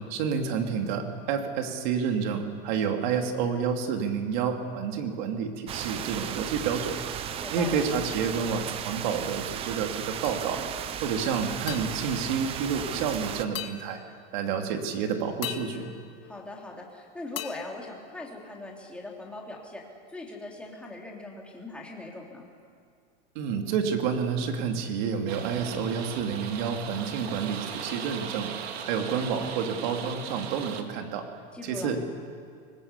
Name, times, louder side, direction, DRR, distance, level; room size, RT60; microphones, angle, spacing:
voice 1, 0.0-7.0 7.5-10.6 11.0-14.0 14.3-15.9 23.3-28.5 28.8-31.3 31.6-32.0, right 6 dB, 45° right, 4 dB, 2.9 m, -29 dB
sound 1, 5.7-13.4, right 9 dB, 20° right, 0.7 m, -35 dB
voice 2, 7.3-7.8 16.2-19.8 20.1-22.5 31.5-31.9, left 2 dB, 5° left, -2 dB, 3.2 m, -40 dB
sound 2, 10.2-10.8 11.7-13.1 13.5-14.6 15.4-16.9 17.4-18.8, left 13 dB, 65° left, 1.8 m, -42 dB
sound 3, 25.3-30.8, right 8 dB, 75° right, 2.3 m, -38 dB
25.5 x 19.5 x 8.3 m, 2.1 s
supercardioid pair, 160°, 31 cm